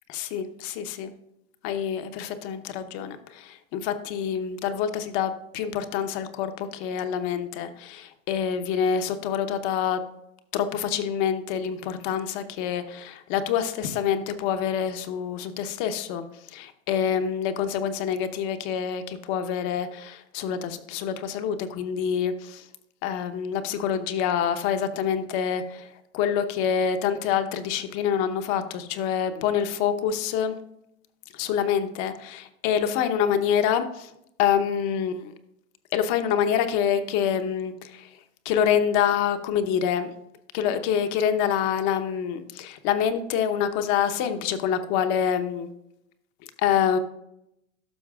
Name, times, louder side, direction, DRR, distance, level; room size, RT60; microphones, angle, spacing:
voice 1, 0.1-1.1 1.6-10.0 10.5-16.2 16.5-22.6 23.0-25.9 26.1-30.6 31.3-34.1 34.4-35.3 35.9-38.1 38.4-40.1 40.5-45.7 46.6-47.0, left 8 dB, 45° left, 9 dB, 0.9 m, -26 dB
12.5 x 5.8 x 2.4 m, 0.80 s
hypercardioid pair, 125°, 42 cm